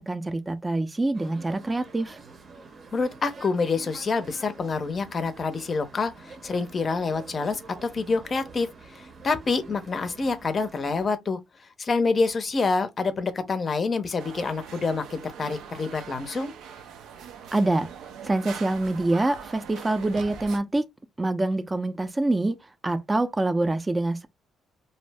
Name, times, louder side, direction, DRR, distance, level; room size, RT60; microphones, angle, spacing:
voice 1, 0.0-2.2 17.5-17.9 18.2-20.9 21.2-22.6 22.8-24.3, right 2 dB, 20° right, 0.4 m, -25 dB
sound 1, 1.1-11.1, right 4 dB, 45° right, 0.7 m, -47 dB
voice 2, 2.9-8.7 8.9-11.4 11.8-16.5, left 4 dB, 40° left, 0.5 m, -27 dB
sound 2, 14.2-20.6, right 7 dB, 85° right, 0.5 m, -42 dB
2.6 x 2.0 x 3.3 m
cardioid pair, 95°, 0 cm